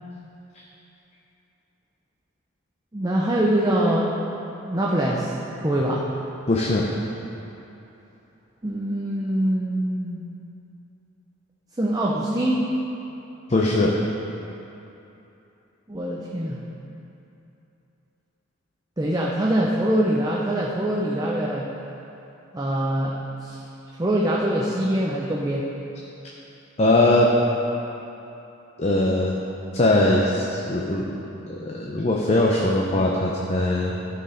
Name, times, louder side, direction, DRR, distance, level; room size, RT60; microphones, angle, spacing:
voice 1, 2.9-4.1 4.6-5.3 5.6-6.0 8.6-10.3 11.8-12.7 15.9-16.6 19.0-21.7 22.5-23.6 24.0-25.7, right 1 dB, 20° right, -4 dB, 0.6 m, -23 dB
voice 2, 6.5-6.9 13.5-13.9 26.8-27.3 28.8-29.4 29.7-31.1 31.5-34.0, left 2 dB, 35° left, -2 dB, 0.6 m, -20 dB
13.0 x 4.7 x 5.0 m, 2.9 s
head